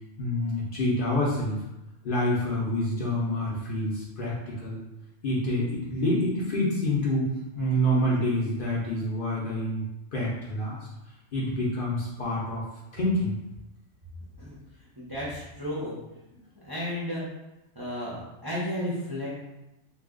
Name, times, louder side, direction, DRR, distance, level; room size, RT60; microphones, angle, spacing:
voice 1, 0.2-1.6 2.0-4.3 4.6-4.8 5.2-7.3 7.6-9.8 10.1-10.8 11.3-12.6 12.9-13.3, left 1 dB, 55° left, -5 dB, 0.7 m, -27 dB
voice 2, 15.0-16.0 16.5-17.2 17.7-19.3, left 1 dB, 25° right, -7 dB, 0.5 m, -33 dB
2.7 x 2.4 x 3.6 m, 0.95 s
omnidirectional pair, 1.3 m